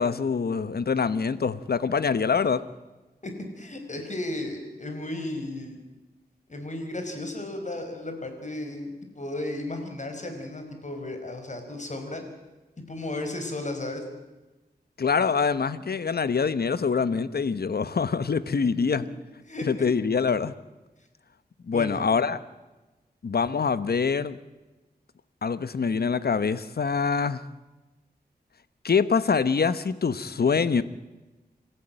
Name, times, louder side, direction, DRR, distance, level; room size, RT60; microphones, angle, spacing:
voice 1, 0.0-2.6 15.0-19.0 19.7-20.5 21.7-22.4 23.2-24.4 25.4-27.5 28.8-30.8, left 5 dB, 70° left, 1.1 m, -25 dB
voice 2, 3.2-5.8 6.5-12.2 12.9-14.0 19.0-19.1 19.5-19.9 21.7-22.0, left 1 dB, 45° left, 5.2 m, -34 dB
27.0 x 14.0 x 9.1 m
wide cardioid pair, 70°, 17 cm